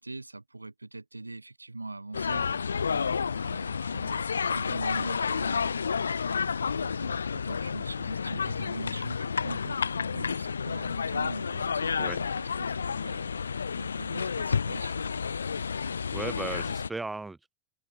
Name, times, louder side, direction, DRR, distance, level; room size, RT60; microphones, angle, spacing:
voice 1, 0.0-4.2 4.5-5.8 6.7-15.0, right 2 dB, 80° right, 1.2 m, -42 dB
sound 1, 2.1-16.9, left 6 dB, 75° left, 0.3 m, -30 dB
voice 2, 16.1-17.5, right 3 dB, 10° right, 0.5 m, -36 dB
open air
figure-of-eight pair, 90°, 0 cm